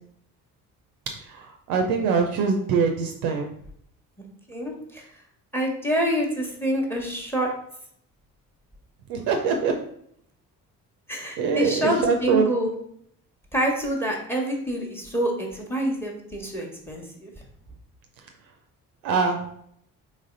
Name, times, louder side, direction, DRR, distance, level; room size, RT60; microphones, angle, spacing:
voice 1, 1.3-3.5 9.1-9.7 11.4-12.4 19.0-19.4, right 5 dB, 50° right, 3 dB, 0.6 m, -23 dB
voice 2, 4.5-5.0 5.5-7.5 11.1-12.7 13.5-17.3, equal, 5° left, 1 dB, 1.1 m, -27 dB
4.0 x 3.1 x 3.7 m, 0.69 s
figure-of-eight pair, 45°, 46 cm